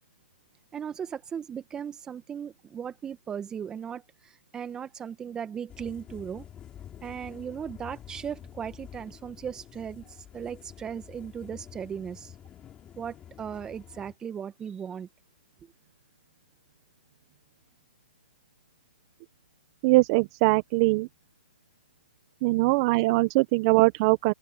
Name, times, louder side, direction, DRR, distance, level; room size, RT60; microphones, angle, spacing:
voice 1, 0.7-6.5 7.0-12.3 13.0-15.1, right 8 dB, 15° right, 2.0 m, -37 dB
sound 1, 5.7-14.1, left 10 dB, 15° left, 4.0 m, -48 dB
voice 2, 19.8-21.1 22.4-24.3, right 23 dB, 30° right, 1.3 m, -22 dB
hypercardioid pair, 140°, 6 cm